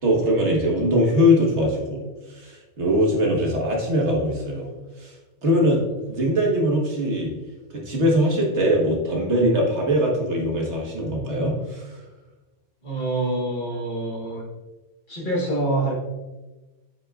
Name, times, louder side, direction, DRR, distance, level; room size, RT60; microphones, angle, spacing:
voice 1, 0.0-2.0 2.3-4.7 5.0-5.1 5.4-7.3 7.9-11.9, equal, 85° right, -2 dB, 1.9 m, -21 dB
voice 2, 12.8-14.4 15.1-15.9, right 2 dB, 45° left, -3 dB, 1.8 m, -26 dB
8.7 x 6.2 x 2.5 m, 1.1 s
omnidirectional pair, 1.1 m